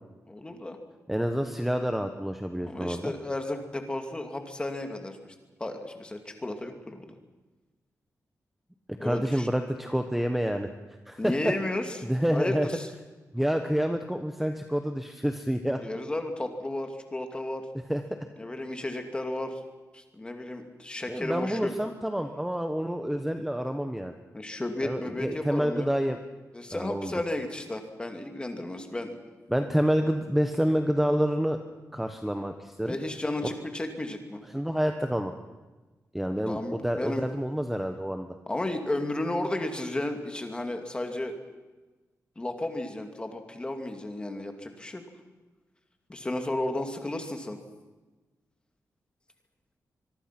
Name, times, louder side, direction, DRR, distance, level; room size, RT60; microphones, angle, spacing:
voice 1, 0.2-0.8 2.6-5.3 5.6-7.1 9.0-9.5 11.2-12.0 12.3-12.9 15.8-17.7 18.4-19.6 19.9-21.7 24.3-25.9 26.5-29.2 32.8-34.4 36.5-37.2 38.5-41.3 42.4-45.0 46.1-47.6, left 1 dB, 15° left, 5 dB, 2.4 m, -33 dB
voice 2, 1.1-3.1 9.0-10.7 11.1-11.5 12.0-12.7 13.3-15.8 17.9-18.2 21.1-24.1 24.8-26.2 26.7-27.1 29.5-31.6 31.9-33.0 34.5-35.3 36.1-38.3, equal, 5° right, 6 dB, 1.1 m, -28 dB
24.5 x 23.0 x 6.0 m, 1.2 s
wide cardioid pair, 175°, 6 cm